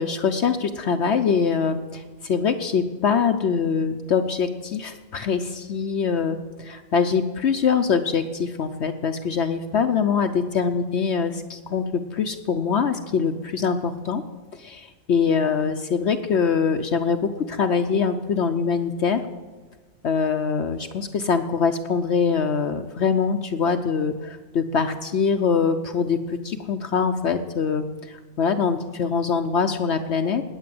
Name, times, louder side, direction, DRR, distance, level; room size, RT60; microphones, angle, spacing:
voice 1, 0.0-14.2 14.5-17.2 17.5-19.2 20.0-30.4, left 6 dB, 60° left, 6 dB, 1.0 m, -23 dB
19.5 x 8.3 x 7.7 m, 1.4 s
omnidirectional pair, 1.3 m